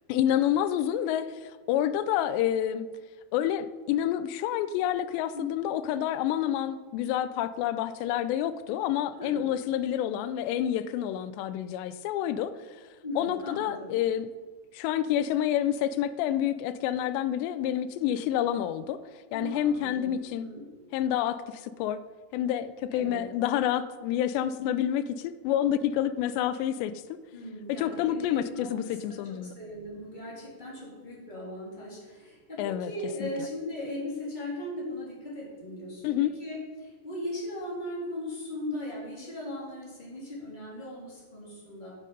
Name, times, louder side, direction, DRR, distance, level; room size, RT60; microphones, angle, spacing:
voice 1, 0.1-2.9 3.3-12.8 13.2-14.3 14.7-19.0 19.3-20.5 20.9-22.0 22.3-27.2 27.8-29.5 32.6-32.9 33.2-33.3 36.0-36.3, left 11 dB, 85° left, 13 dB, 2.7 m, -28 dB
voice 2, 5.3-5.7 9.2-9.5 13.0-14.0 19.3-20.7 22.9-23.3 27.3-41.9, left 1 dB, 15° left, -5 dB, 2.1 m, -38 dB
10.0 x 8.4 x 5.3 m, 1.4 s
omnidirectional pair, 5.0 m